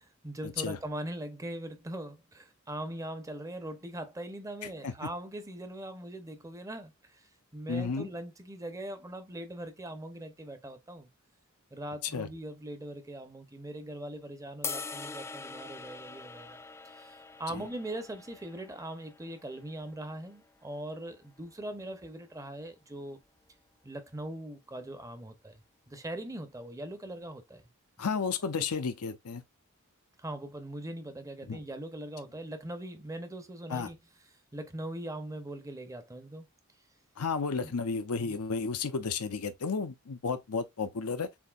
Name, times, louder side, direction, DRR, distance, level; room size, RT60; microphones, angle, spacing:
voice 1, 0.0-11.1 11.7-16.6 16.8-23.2 23.8-27.6 28.6-28.7 30.2-34.0 34.5-36.5 37.6-37.7 38.2-38.4, right 1 dB, 15° right, 0.7 m, -41 dB
voice 2, 7.7-8.1 12.1-12.3 17.5-17.6 28.0-29.4 31.5-31.6 33.7-33.9 37.2-41.3, left 5 dB, 90° left, 0.7 m, -32 dB
sound 1, 14.6-20.9, left 4 dB, 10° left, 0.3 m, -44 dB
7.1 x 2.7 x 2.4 m
head